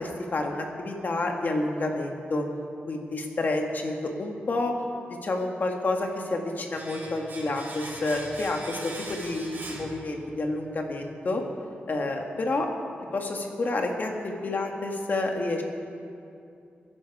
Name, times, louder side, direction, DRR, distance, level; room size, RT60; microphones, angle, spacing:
voice 1, 0.0-2.5 2.9-4.7 5.2-11.4 11.9-12.7 13.1-15.6, left 2 dB, 50° left, 2 dB, 1.8 m, -29 dB
Domestic sounds home sounds, 6.7-10.5 10.8-10.9, right 2 dB, 55° right, 3.8 m, -41 dB
23.0 x 10.5 x 4.9 m, 2.6 s
wide cardioid pair, 125°, 4 cm